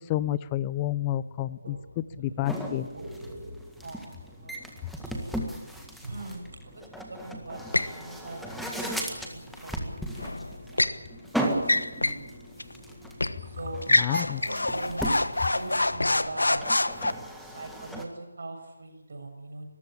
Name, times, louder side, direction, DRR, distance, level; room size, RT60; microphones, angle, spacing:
voice 1, 0.1-1.8 2.2-2.9 14.0-14.4, left 13 dB, 20° left, 17 dB, 0.6 m, -29 dB
voice 2, 1.3-2.4 2.8-3.5 3.8-5.4 6.0-7.6 7.9-11.1 11.4-12.3 13.4-13.8 14.4-15.1 15.5-16.6 17.4-19.7, right 2 dB, 60° right, 4 dB, 7.2 m, -42 dB
sound 1, 2.4-18.0, right 1 dB, ahead, 1.8 m, -37 dB
sound 2, 7.7-8.0 10.2-11.0 11.6-12.3 12.6-12.7 13.2-13.4 13.8-17.1, left 2 dB, 85° left, 1.2 m, -26 dB
24.0 x 15.0 x 8.8 m, 1.1 s
figure-of-eight pair, 155°, 0 cm